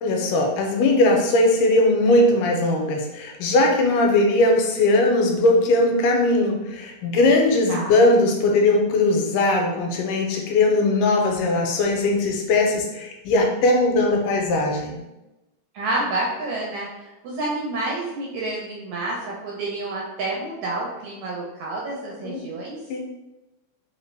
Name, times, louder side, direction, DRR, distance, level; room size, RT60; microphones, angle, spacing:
voice 1, 0.0-15.0 22.2-22.4 22.9-23.0, left 2 dB, 80° left, 1 dB, 2.2 m, -19 dB
voice 2, 15.7-22.8, right 2 dB, 70° right, -4 dB, 1.8 m, -29 dB
5.0 x 2.8 x 3.3 m, 0.98 s
omnidirectional pair, 3.9 m